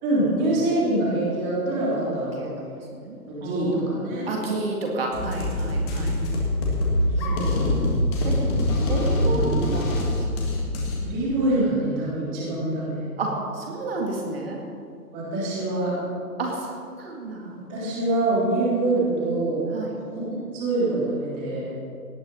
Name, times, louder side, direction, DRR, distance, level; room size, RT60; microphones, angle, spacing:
voice 1, 0.0-2.4 3.3-4.3 5.8-6.1 7.2-7.7 11.0-13.0 15.1-16.0 17.6-19.6 20.1-21.7, right 2 dB, 15° right, -6 dB, 3.3 m, -25 dB
voice 2, 2.1-6.2 7.2-7.7 8.2-8.4 8.9-10.5 13.2-14.6 16.4-17.6 19.7-20.0, right 2 dB, 40° right, 0 dB, 2.1 m, -31 dB
sound 1, 5.1-11.0, left 1 dB, 15° left, 1.8 m, -24 dB
18.0 x 10.5 x 5.4 m, 2.5 s
figure-of-eight pair, 155°, 47 cm